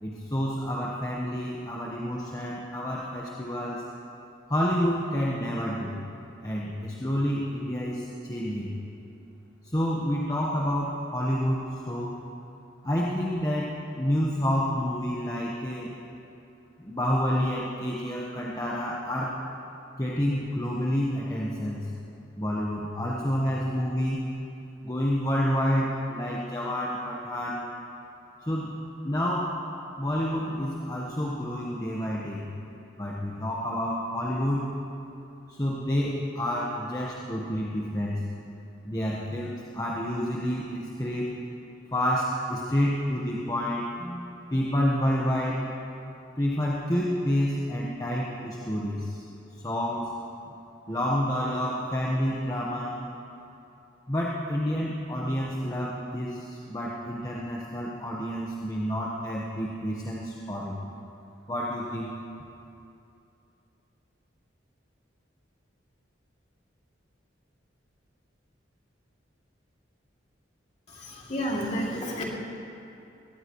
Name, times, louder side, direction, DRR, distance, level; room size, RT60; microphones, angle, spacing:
voice 1, 0.0-3.8 4.5-6.0 6.4-8.7 9.6-12.2 12.8-15.9 16.8-19.4 20.0-21.9 22.4-24.2 24.8-27.7 28.5-28.8 29.0-29.5 30.0-32.5 33.0-34.7 35.5-38.2 38.8-41.3 41.9-45.6 46.4-49.2 49.6-50.1 50.9-53.0 54.1-60.8 61.5-62.1, equal, 20° left, -5 dB, 1.2 m, -29 dB
voice 2, 70.9-72.2, equal, 40° left, -3 dB, 2.7 m, -31 dB
21.5 x 18.0 x 3.1 m, 2.7 s
head